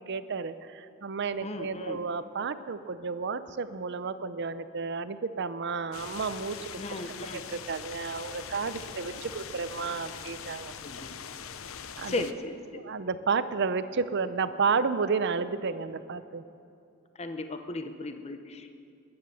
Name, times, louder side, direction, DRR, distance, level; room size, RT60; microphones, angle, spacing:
voice 1, 0.0-10.8 12.0-12.1 12.7-16.4, right 5 dB, 60° right, 13 dB, 0.6 m, -32 dB
voice 2, 1.4-2.0 6.8-7.4 10.8-11.1 12.0-12.9 17.2-18.7, left 2 dB, 30° left, 8 dB, 0.8 m, -36 dB
sound 1, 5.9-12.3, left 7 dB, 90° left, 0.7 m, -42 dB
20.0 x 9.6 x 7.0 m, 2.5 s
head